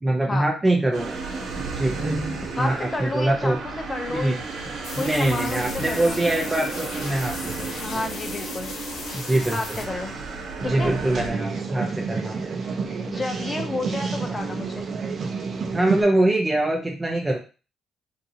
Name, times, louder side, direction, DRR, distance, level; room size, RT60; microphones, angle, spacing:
voice 1, 0.0-1.1 1.8-3.6 4.1-4.4 5.0-7.7 7.9-8.0 9.1-9.8 10.7-12.4 15.7-17.4, right 1 dB, 15° right, -1 dB, 0.7 m, -24 dB
sound 1, 0.9-11.3, right 4 dB, 80° right, 1.2 m, -33 dB
voice 2, 2.6-4.4 5.0-6.2 7.8-8.7 9.5-10.1 10.6-11.0 13.0-14.9, left 3 dB, 25° left, 4 dB, 0.8 m, -31 dB
sound 2, 4.8-9.8, left 3 dB, 75° left, 0.8 m, -37 dB
sound 3, 10.6-16.0, right 4 dB, 50° right, 0.7 m, -29 dB
3.8 x 2.6 x 2.8 m, 0.33 s
cardioid pair, 90°, 0 cm